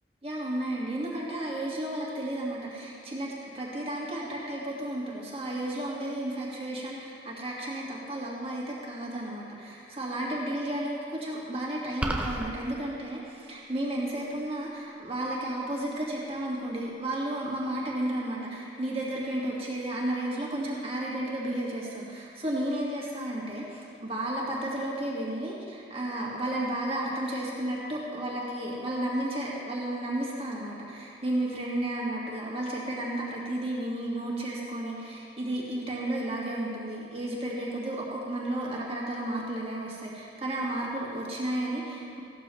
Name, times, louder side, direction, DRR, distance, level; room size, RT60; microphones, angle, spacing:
voice 1, 0.2-42.2, right 1 dB, 35° right, -5 dB, 1.9 m, -33 dB
sound 1, 12.0-12.5, right 1 dB, 10° right, 0.8 m, -29 dB
16.0 x 13.0 x 3.2 m, 2.4 s
head